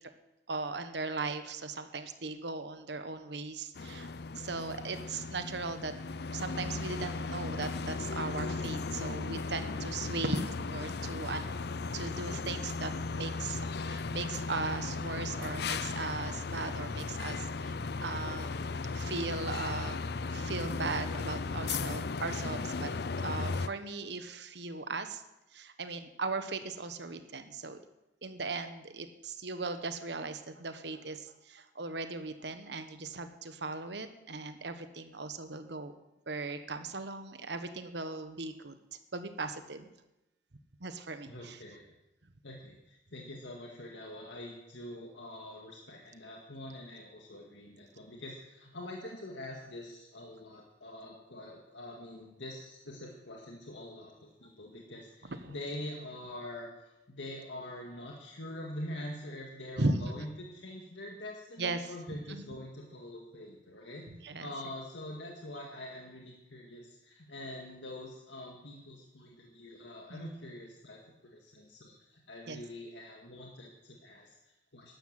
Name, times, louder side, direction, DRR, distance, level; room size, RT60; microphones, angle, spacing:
voice 1, 0.5-5.9 6.3-11.5 11.9-18.6 18.9-20.0 20.3-22.9 23.2-25.2 25.5-27.8 28.2-35.9 36.3-38.8 39.1-39.9 40.8-41.6 55.2-55.5 59.8-60.3 61.6-62.4 64.1-64.5 70.1-70.3 72.5-72.6, right 3 dB, 65° right, 9 dB, 1.2 m, -38 dB
sound 1, 3.8-23.7, left 4 dB, 60° left, 0.6 m, -36 dB
voice 2, 41.3-41.9 42.4-56.7 57.2-64.1 64.4-74.9, left 1 dB, 80° left, 0 dB, 1.9 m, -45 dB
13.0 x 11.5 x 7.7 m, 0.95 s
head